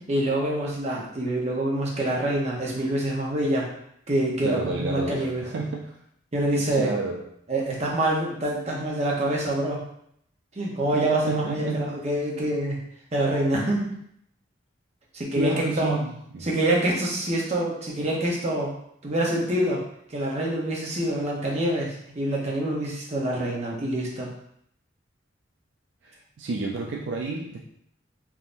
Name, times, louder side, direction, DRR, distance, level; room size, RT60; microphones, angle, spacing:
voice 1, 0.1-3.7 4.1-5.4 6.3-6.9 7.5-9.8 10.6-12.8 13.1-13.9 15.1-16.0 16.4-18.7 19.0-19.8 20.1-24.3, right 1 dB, 35° right, -3 dB, 0.7 m, -26 dB
voice 2, 4.4-6.0 6.8-7.4 11.3-12.0 13.9-14.0 15.3-16.5 26.0-27.6, right 3 dB, 65° right, -1 dB, 0.3 m, -30 dB
3.5 x 2.6 x 2.5 m, 0.71 s
head